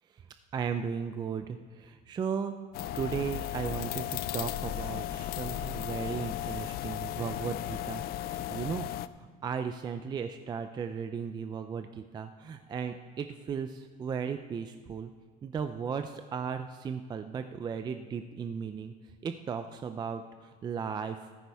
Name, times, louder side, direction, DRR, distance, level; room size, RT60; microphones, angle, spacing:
voice 1, 0.5-2.5 2.9-8.8 9.4-15.1 15.4-18.9 19.2-21.3, right 6 dB, 20° right, 8 dB, 0.4 m, -36 dB
sound 1, 2.7-9.1, left 12 dB, 55° left, 0.4 m, -35 dB
14.5 x 13.5 x 3.4 m, 1.5 s
cardioid pair, 150°, 19 cm